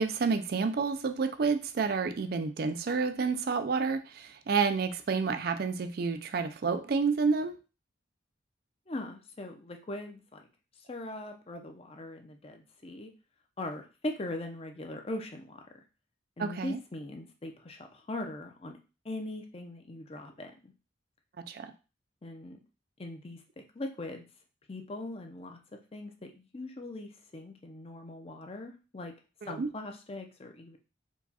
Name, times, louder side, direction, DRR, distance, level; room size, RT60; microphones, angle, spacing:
voice 1, 0.0-7.6 16.4-16.8 21.5-21.7 29.4-29.7, right 5 dB, 50° right, 10 dB, 0.4 m, -29 dB
voice 2, 8.9-10.4 10.9-13.1 13.6-15.6 16.4-18.8 19.0-20.7 22.2-22.6 23.0-24.3 24.7-25.6 25.9-29.1 29.5-30.8, left 1 dB, 30° left, 4 dB, 0.6 m, -40 dB
4.6 x 2.3 x 4.1 m, 0.31 s
head